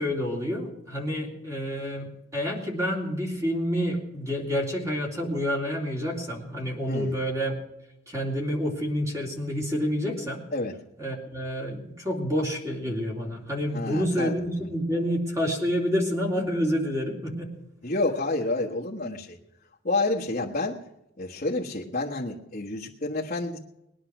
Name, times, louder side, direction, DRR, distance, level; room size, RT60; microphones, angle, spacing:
voice 1, 0.0-7.6 8.1-10.4 11.0-17.5, equal, 15° right, -1 dB, 3.2 m, -28 dB
voice 2, 13.7-14.3 14.6-14.7 17.8-19.4 19.8-20.8 21.2-23.6, left 2 dB, 40° left, -6 dB, 1.5 m, -29 dB
20.5 x 10.0 x 6.1 m, 0.88 s
head